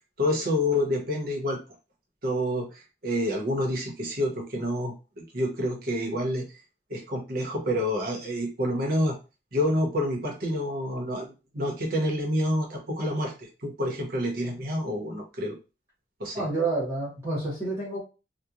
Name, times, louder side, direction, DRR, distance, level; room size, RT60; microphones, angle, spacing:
voice 1, 0.2-1.6 2.2-6.5 6.9-9.2 9.5-15.6 16.2-16.4, left 1 dB, 55° right, 0 dB, 0.9 m, -28 dB
voice 2, 16.3-18.0, right 2 dB, 15° right, -7 dB, 1.1 m, -29 dB
2.8 x 2.2 x 2.4 m, 0.30 s
head